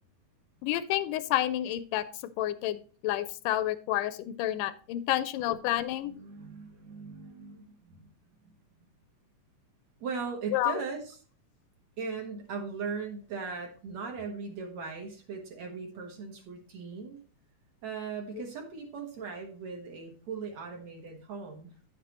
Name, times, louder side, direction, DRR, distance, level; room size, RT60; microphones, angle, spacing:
voice 1, 0.6-2.1 2.4-6.1 10.5-10.7, left 13 dB, 80° left, 13 dB, 2.1 m, -29 dB
voice 2, 6.0-8.1 8.4-8.5 8.8-8.9 10.0-11.2 12.0-17.2 17.8-21.7, right 5 dB, 60° right, 2 dB, 2.3 m, -39 dB
9.7 x 7.4 x 2.9 m, 0.39 s
omnidirectional pair, 3.8 m